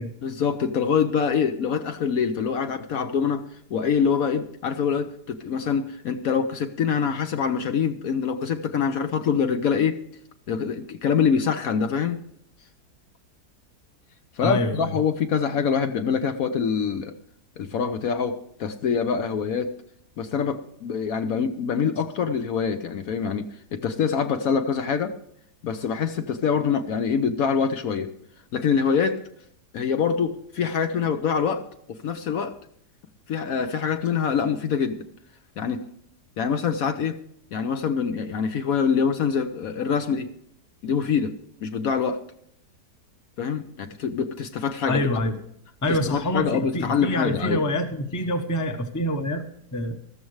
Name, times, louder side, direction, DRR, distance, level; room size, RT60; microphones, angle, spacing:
voice 1, 0.2-3.4 3.7-10.0 10.5-12.2 14.4-17.1 17.6-19.7 20.2-25.2 25.6-28.1 28.5-29.2 29.7-32.5 33.3-35.0 35.6-35.8 36.4-37.2 37.5-40.3 40.8-41.3 41.6-42.2 43.4-45.0 45.9-47.6, left 6 dB, 65° left, 8 dB, 1.1 m, -25 dB
voice 2, 14.4-15.0 44.9-45.4 45.8-49.4 49.7-50.0, left 1 dB, 15° left, 6 dB, 0.8 m, -26 dB
13.5 x 13.5 x 3.2 m, 0.70 s
omnidirectional pair, 1.8 m